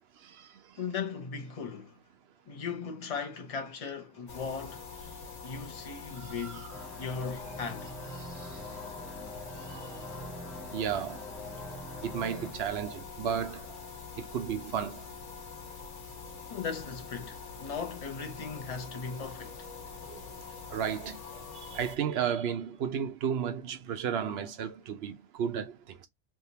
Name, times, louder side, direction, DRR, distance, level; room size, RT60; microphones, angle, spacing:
voice 1, 0.8-2.0 2.5-4.9 5.4-6.7 7.0-7.9 16.5-19.7, left 5 dB, 35° left, 0.7 m, -38 dB
sound 1, 4.3-22.0, left 5 dB, 65° left, 1.3 m, -45 dB
voice 2, 6.2-6.7 8.2-8.6 9.7-9.9 10.7-11.3 12.0-13.7 14.2-15.1 20.1-20.2 20.7-21.2 21.6-26.1, right 8 dB, 60° right, 0.8 m, -33 dB
sound 2, 6.7-12.5, equal, ahead, 1.1 m, -44 dB
3.5 x 2.6 x 2.7 m
omnidirectional pair, 1.3 m